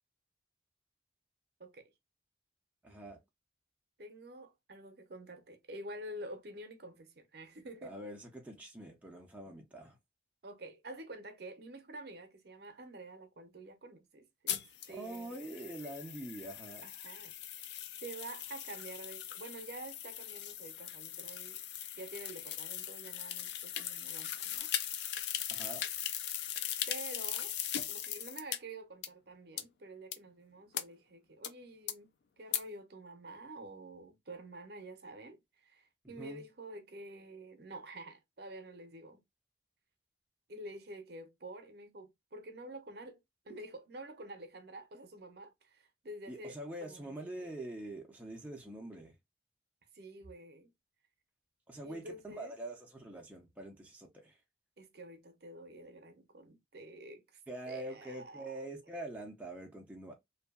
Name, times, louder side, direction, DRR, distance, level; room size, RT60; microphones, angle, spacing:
voice 1, 1.6-1.9 4.0-8.0 10.4-15.6 16.8-21.6 22.0-24.7 26.4-26.5 26.9-27.6 27.9-32.1 32.4-39.2 40.5-47.0 47.3-47.5 49.9-50.7 51.8-52.5 54.8-57.4 57.7-58.5, right 1 dB, 55° right, 0.6 m, -49 dB
voice 2, 2.8-3.2 7.8-10.0 14.9-16.9 25.5-25.8 36.0-36.4 46.3-49.1 51.7-54.4 57.5-60.1, right 1 dB, 10° right, 0.4 m, -45 dB
sound 1, 14.5-28.6 29.0-29.1 29.6-29.7 30.1-30.2 30.7-30.8 31.4-31.5 31.9-32.0 32.5-32.6, left 10 dB, 65° left, 0.3 m, -39 dB
2.6 x 2.2 x 2.2 m
head